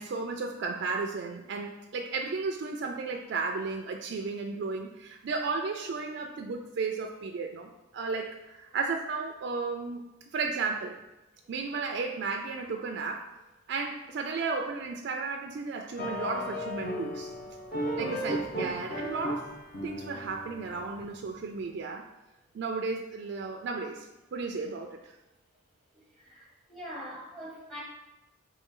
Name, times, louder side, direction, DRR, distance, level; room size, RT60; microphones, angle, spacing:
voice 1, 0.0-10.0 10.3-11.0 11.5-13.3 13.7-17.3 18.0-19.5 19.8-22.0 22.5-25.1, right 4 dB, 55° right, 3 dB, 0.3 m, -34 dB
sound 1, 16.0-21.2, equal, 45° left, 0.9 m, -35 dB
voice 2, 26.2-27.8, equal, ahead, -4 dB, 0.7 m, -43 dB
4.1 x 3.1 x 3.7 m, 0.99 s
head